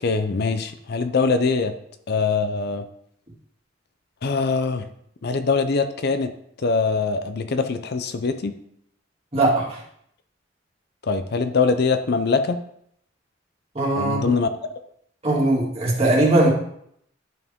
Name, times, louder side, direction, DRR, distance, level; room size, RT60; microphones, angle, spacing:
voice 1, 0.0-1.7 2.1-2.8 4.2-4.9 5.2-6.3 6.6-8.6 11.1-12.6 14.0-14.5, left 4 dB, 55° left, 10 dB, 0.5 m, -22 dB
voice 2, 9.3-9.8 13.7-14.3 15.2-16.5, right 2 dB, 30° right, -5 dB, 2.4 m, -20 dB
11.0 x 4.7 x 3.6 m, 0.71 s
head